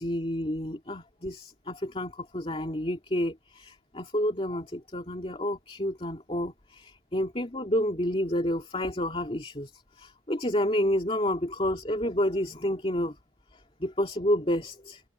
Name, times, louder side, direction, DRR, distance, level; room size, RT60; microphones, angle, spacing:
voice 1, 0.0-13.2 13.8-15.0, equal, 30° left, 2.5 m, -29 dB
head